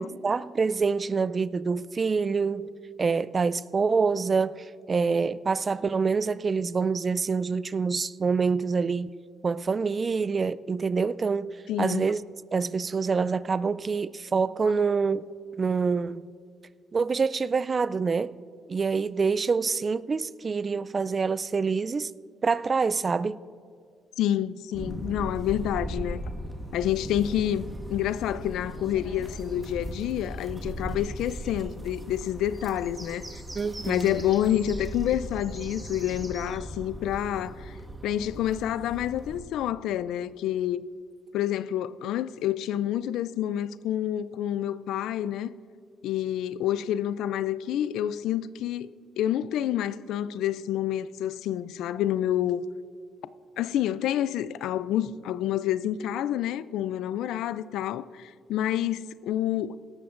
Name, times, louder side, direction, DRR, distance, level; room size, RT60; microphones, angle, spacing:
voice 1, 0.0-2.7 3.0-9.1 9.4-12.2 12.5-15.3 15.6-16.3 16.9-18.3 18.7-22.1 22.4-23.4 33.5-34.2, right 5 dB, 35° right, 0.3 m, -26 dB
voice 2, 11.7-12.1 24.2-26.2 26.7-33.4 33.9-37.8 38.0-40.8 41.3-45.6 46.0-48.9 49.2-52.6 53.6-59.8, left 11 dB, 85° left, 0.3 m, -28 dB
sound 1, 24.7-39.4, right 1 dB, 15° right, 1.5 m, -38 dB
17.5 x 13.5 x 2.5 m
cardioid pair, 90°, 0 cm